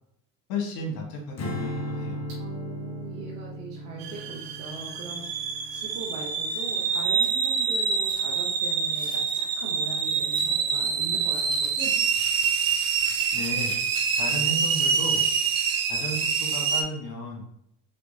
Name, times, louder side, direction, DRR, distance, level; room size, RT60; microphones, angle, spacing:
voice 1, 0.5-2.2 13.3-13.7 14.2-15.2 15.9-16.2 16.5-17.5, left 1 dB, 65° left, -1 dB, 1.5 m, -33 dB
Strum, 1.4-7.8, equal, 35° left, 1.1 m, -37 dB
voice 2, 2.4-11.9, right 3 dB, 65° right, -3 dB, 1.0 m, -41 dB
sound 1, 4.0-16.8, right 6 dB, 45° right, 0.7 m, -26 dB
sound 2, 7.2-7.5 8.1-8.2 8.9-9.4 10.2-10.5 11.2-15.5, right 1 dB, 10° right, 1.0 m, -46 dB
3.4 x 3.4 x 2.7 m, 0.75 s
hypercardioid pair, 65°, 47 cm